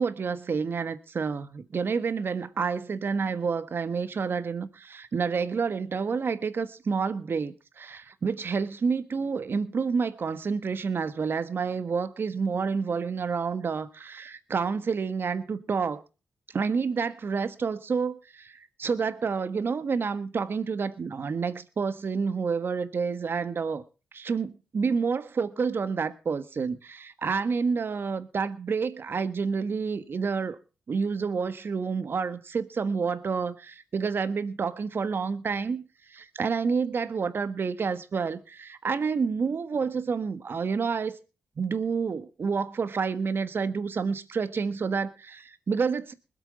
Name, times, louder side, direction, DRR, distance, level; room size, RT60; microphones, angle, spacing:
voice 1, 0.0-16.0 16.5-23.8 24.1-30.6 30.9-35.8 36.1-41.2 41.6-46.1, right 5 dB, 55° right, 1.4 m, -29 dB
20.5 x 8.3 x 5.4 m
cardioid pair, 60°, 5 cm